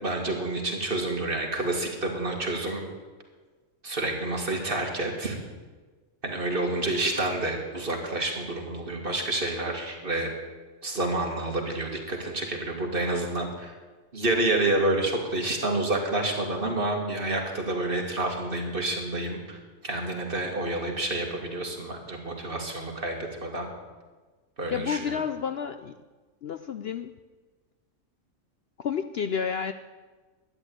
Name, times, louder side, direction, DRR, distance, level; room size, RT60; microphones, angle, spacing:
voice 1, 0.0-2.8 3.8-5.4 6.2-10.3 10.8-13.7 14.1-19.6 19.8-23.7 24.6-25.1, right 2 dB, 40° right, 1 dB, 2.4 m, -29 dB
voice 2, 24.7-25.9 26.4-27.1 28.8-29.7, left 7 dB, 60° left, 10 dB, 0.7 m, -30 dB
12.5 x 10.0 x 8.7 m, 1.3 s
omnidirectional pair, 1.4 m